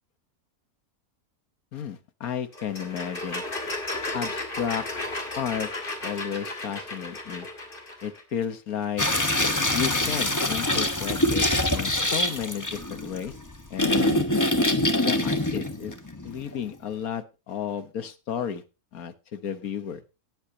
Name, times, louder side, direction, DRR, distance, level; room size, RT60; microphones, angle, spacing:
voice 1, 1.7-3.4 4.1-4.8 5.4-5.7 6.0-7.5 8.0-9.1 9.7-13.3 13.7-14.2 15.0-15.9 16.2-18.6 18.9-20.0, left 8 dB, 80° left, 1.7 m, -32 dB
sound 1, 2.5-8.2, left 2 dB, 35° left, 2.5 m, -34 dB
sound 2, 9.0-16.6, left 1 dB, 15° left, 1.1 m, -24 dB
18.5 x 8.3 x 2.8 m
omnidirectional pair, 1.5 m